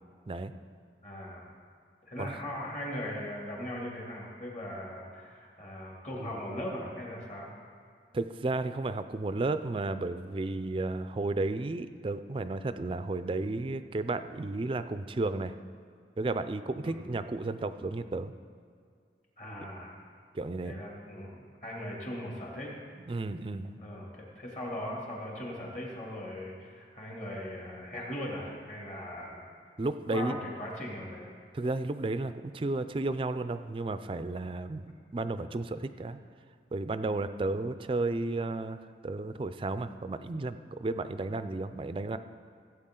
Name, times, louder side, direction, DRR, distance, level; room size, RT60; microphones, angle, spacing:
voice 1, 1.0-1.5 2.1-7.5 16.8-17.2 19.4-19.9 20.6-22.7 23.8-29.4 30.1-31.3, left 1 dB, 45° left, -3 dB, 2.6 m, -39 dB
voice 2, 8.1-15.5 16.2-18.3 20.3-20.7 23.1-23.8 29.8-30.4 31.5-36.2 36.7-42.2, right 2 dB, 30° right, 11 dB, 0.4 m, -33 dB
16.0 x 8.3 x 3.8 m, 2.2 s
head